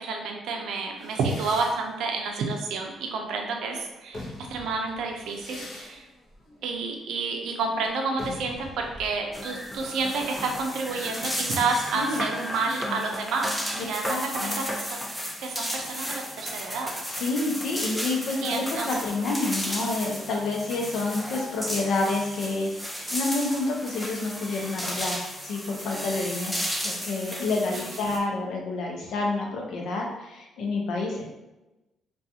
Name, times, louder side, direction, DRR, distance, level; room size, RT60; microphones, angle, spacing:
voice 1, 0.0-6.1 6.6-14.9 15.4-16.9 18.4-18.9 27.7-27.8, right 4 dB, 80° right, 2 dB, 0.4 m, -30 dB
sound 1, 1.0-3.5 3.9-11.4, left 1 dB, 45° left, 0.8 m, -44 dB
sound 2, 9.3-28.2, equal, ahead, 0.5 m, -34 dB
voice 2, 13.8-14.7 17.1-31.3, left 3 dB, 75° left, 0 dB, 0.6 m, -29 dB
2.4 x 2.3 x 2.7 m, 1.0 s
cardioid pair, 90°, 0 cm